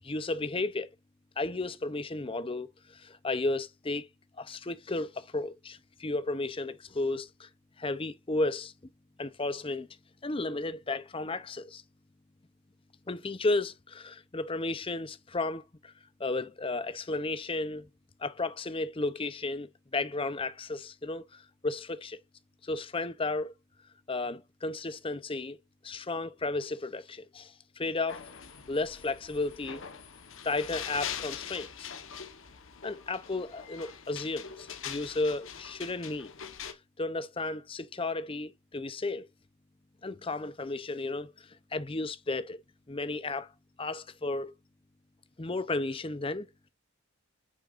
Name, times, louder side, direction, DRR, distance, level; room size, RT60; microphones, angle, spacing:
voice 1, 0.0-0.9 1.4-4.1 4.4-7.5 7.8-8.7 9.2-9.9 10.2-11.8 13.1-15.9 16.2-17.9 18.2-22.2 22.6-23.5 24.1-25.6 25.8-28.2 28.7-29.8 30.4-31.9 32.8-36.3 37.0-39.3 40.0-42.6 42.9-43.5 43.8-44.5 45.4-46.5, left 2 dB, 25° left, 0.6 m, -33 dB
sound 1, 28.1-36.7, left 8 dB, 65° left, 1.2 m, -43 dB
8.8 x 6.5 x 2.5 m
head